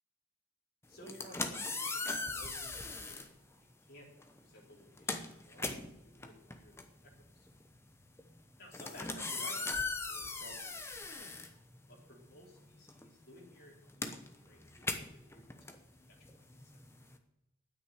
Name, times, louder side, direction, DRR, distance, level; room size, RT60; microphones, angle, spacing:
voice 1, 0.9-3.4 3.8-4.1 4.4-7.5 8.6-9.8 10.0-11.3 11.9-15.8 16.3-16.6, equal, 45° left, -3 dB, 4.3 m, -56 dB
sound 1, 0.9-3.3 4.2-4.4 4.7-12.2 12.5-17.2, left 3 dB, 10° left, 0.9 m, -40 dB
9.7 x 8.6 x 9.6 m, 0.90 s
head